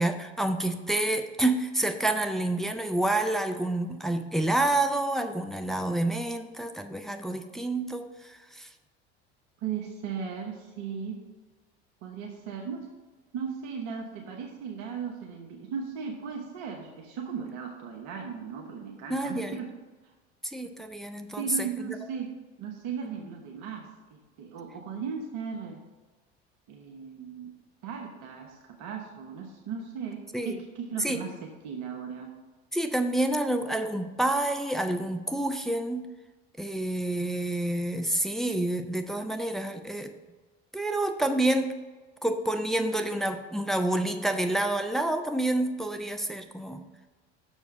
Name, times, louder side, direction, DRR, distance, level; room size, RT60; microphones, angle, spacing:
voice 1, 0.0-8.7 19.1-19.6 20.4-22.0 30.3-30.6 31.0-31.2 32.7-36.1 36.6-40.1 40.7-41.7 42.2-46.8, right 1 dB, ahead, 7 dB, 0.5 m, -28 dB
voice 2, 9.6-11.2 12.0-12.9 13.3-19.7 21.4-22.3 22.6-25.8 26.7-27.5 27.8-32.3, right 6 dB, 60° right, 1 dB, 1.1 m, -37 dB
6.6 x 4.8 x 6.3 m, 1.3 s
hypercardioid pair, 70°, 33 cm